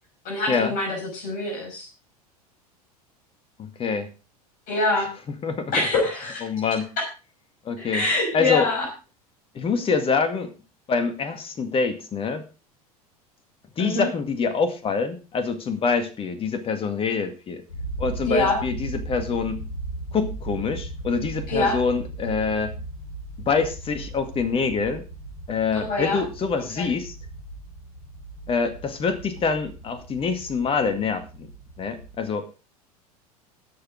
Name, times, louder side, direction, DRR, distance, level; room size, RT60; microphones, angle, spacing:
voice 1, 0.2-1.9 4.7-5.1 5.7-6.4 7.8-8.9 13.8-14.1 18.3-18.6 21.5-21.8 25.7-26.2 26.8-26.9, left 2 dB, 45° left, 0 dB, 5.7 m, -24 dB
voice 2, 3.6-4.1 5.4-5.9 6.4-6.9 7.7-8.0 8.3-8.7 9.5-10.5 10.9-12.5 13.8-17.6 18.0-19.7 20.1-22.7 23.5-25.0 25.5-27.2 28.5-31.5 31.8-32.5, left 5 dB, 30° left, 9 dB, 2.1 m, -25 dB
sound 1, 17.7-32.2, right 2 dB, 75° left, 3.0 m, -37 dB
20.0 x 6.8 x 3.7 m, 0.32 s
figure-of-eight pair, 80°, 20 cm